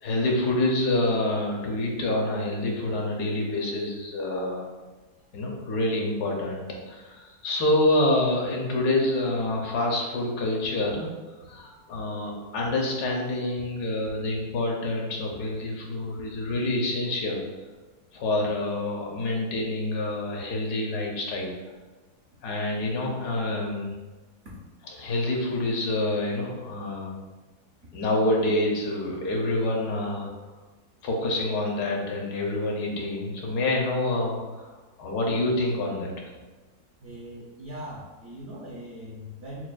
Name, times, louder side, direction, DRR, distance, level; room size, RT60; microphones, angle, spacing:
voice 1, 0.0-4.7 5.3-11.1 11.5-17.4 18.1-21.5 22.4-23.9 24.8-27.1 27.9-30.3 31.0-34.7 35.0-36.3, left 1 dB, 80° left, -1 dB, 1.3 m, -27 dB
voice 2, 37.0-39.7, equal, 60° right, -5 dB, 0.7 m, -40 dB
5.9 x 2.3 x 2.2 m, 1.2 s
omnidirectional pair, 1.7 m